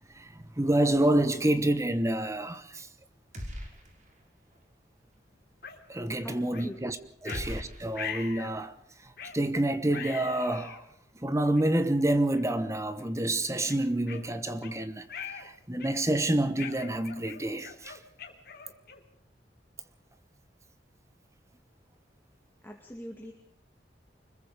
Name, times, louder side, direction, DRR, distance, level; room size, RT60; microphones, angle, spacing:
voice 1, 0.1-2.9 5.9-7.0 7.2-10.9 11.1-18.0, right 1 dB, 15° right, 1.2 m, -28 dB
sound 1, 3.3-4.2 4.5-4.6 7.3-8.6, equal, 45° right, 5.4 m, -40 dB
sound 2, 5.6-5.8 6.5-6.7 7.2-7.5 7.9-8.6 9.2-9.4 9.9-10.8 11.5-11.6 12.3-12.6 13.0-13.1 13.7-14.7 15.1-15.5 15.8-16.1 16.6-19.1, left 7 dB, 55° left, 3.2 m, -41 dB
voice 2, 6.2-6.8 7.2-7.4 22.6-23.3, equal, 10° left, 2.2 m, -42 dB
25.5 x 21.5 x 5.0 m
head